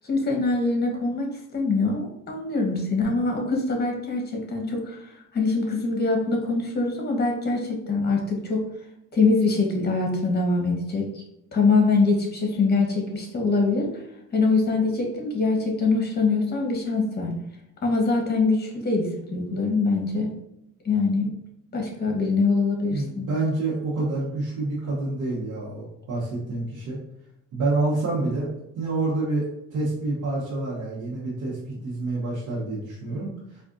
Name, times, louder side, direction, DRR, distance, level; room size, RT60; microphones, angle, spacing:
voice 1, 0.1-1.3 1.5-8.6 9.1-11.1 11.5-13.9 14.3-17.3 17.8-20.3 20.8-21.3 21.7-23.3, left 3 dB, 35° left, 1 dB, 1.1 m, -23 dB
voice 2, 22.9-27.0 27.5-28.5 28.8-33.4, right 2 dB, 85° right, -7 dB, 1.0 m, -27 dB
4.4 x 2.4 x 2.5 m, 0.81 s
cardioid pair, 90°, 30 cm